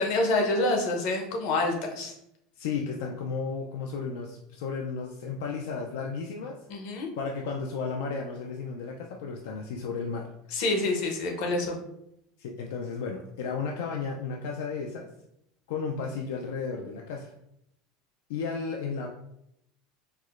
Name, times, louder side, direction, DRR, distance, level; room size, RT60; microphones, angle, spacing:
voice 1, 0.0-2.1 6.7-7.1 10.5-11.8, left 2 dB, 55° left, 2 dB, 0.7 m, -27 dB
voice 2, 2.6-6.7 7.1-10.3 12.4-15.1 15.7-17.3 18.3-19.1, left 5 dB, 80° left, 1 dB, 0.3 m, -33 dB
4.6 x 2.0 x 2.4 m, 0.78 s
supercardioid pair, 160°, 0 cm